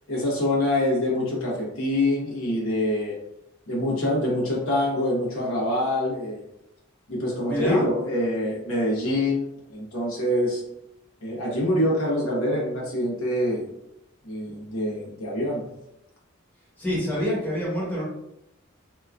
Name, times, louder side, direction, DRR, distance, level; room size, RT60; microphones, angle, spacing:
voice 1, 0.1-3.2 3.7-6.4 7.1-10.6 11.2-13.6 14.2-15.6, left 1 dB, 90° left, -4 dB, 1.0 m, -25 dB
voice 2, 7.5-7.9 16.8-18.0, equal, 10° left, -7 dB, 0.9 m, -26 dB
2.9 x 2.3 x 2.4 m, 0.85 s
head